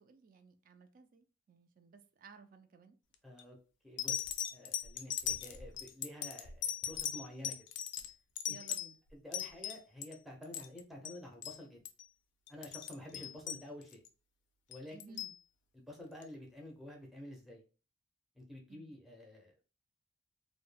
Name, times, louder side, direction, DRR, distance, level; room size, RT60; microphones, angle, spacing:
voice 1, 0.0-3.0 8.5-9.0 13.0-13.4 14.9-15.4 18.7-18.9, right 4 dB, 50° right, 0.3 m, -57 dB
sound 1, 3.1-3.4 4.0-10.1 10.4-10.8 11.0-11.2 11.4-11.6 11.8-12.1 12.5-14.1 14.7-15.4 16.2-16.3, left 9 dB, 70° left, 0.4 m, -39 dB
voice 2, 3.2-3.6 3.8-4.2 4.5-7.5 8.5-8.6 9.2-11.8 12.5-14.0 14.7-15.2 15.7-17.6 18.4-19.6, left 1 dB, ahead, 0.6 m, -50 dB
2.2 x 2.1 x 3.2 m
head